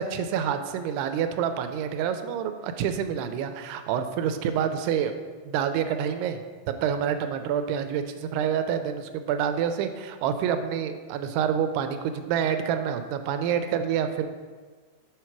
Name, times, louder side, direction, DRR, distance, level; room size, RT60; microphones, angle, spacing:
voice 1, 0.0-5.1 5.5-6.4 6.7-14.3, right 8 dB, 90° right, 8 dB, 2.6 m, -27 dB
6.9 x 4.5 x 5.9 m, 1.5 s
omnidirectional pair, 4.6 m